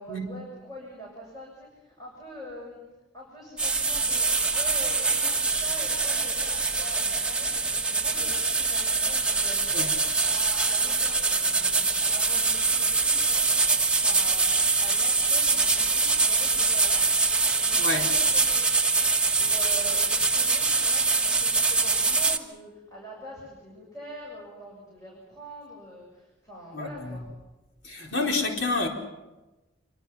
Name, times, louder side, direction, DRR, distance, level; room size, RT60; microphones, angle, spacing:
voice 1, 0.0-2.8 3.1-9.7 10.3-17.1 17.6-18.7 19.1-27.2, right 1 dB, 20° left, 7.1 m, -44 dB
sound 1, 3.6-22.4, right 4 dB, 5° right, 1.4 m, -24 dB
voice 2, 17.7-18.2 26.7-27.2 27.8-28.9, left 2 dB, 90° left, 4.7 m, -29 dB
27.5 x 24.0 x 5.9 m
head